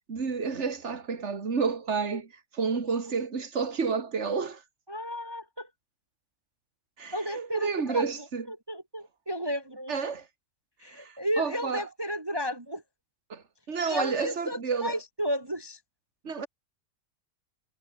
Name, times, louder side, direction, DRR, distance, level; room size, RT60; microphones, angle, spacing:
voice 1, 0.1-4.6 7.0-8.5 9.9-10.3 10.9-11.8 13.3-15.0 16.2-16.5, right 5 dB, 45° right, 2.5 m, -30 dB
voice 2, 4.9-5.7 7.1-8.0 8.5-10.1 10.8-12.8 13.9-15.8, equal, 15° right, 1.4 m, -33 dB
omnidirectional pair, 1.6 m